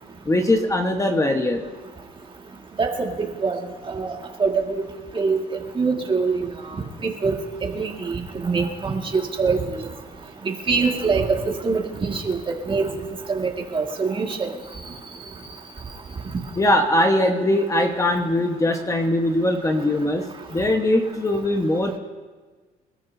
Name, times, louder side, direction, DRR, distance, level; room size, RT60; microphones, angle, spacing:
voice 1, 0.2-1.6 16.6-20.2 20.5-22.0, left 1 dB, 20° left, 3 dB, 1.3 m, -21 dB
voice 2, 2.8-3.1 3.4-3.6 3.9-4.1 4.4-4.6 5.1-5.4 5.8-6.5 7.0-7.3 7.6-9.6 10.5-12.4 12.7-12.9 13.3-14.5, right 4 dB, 30° right, 1 dB, 2.0 m, -23 dB
27.0 x 13.0 x 2.8 m, 1.4 s
cardioid pair, 110°, 17 cm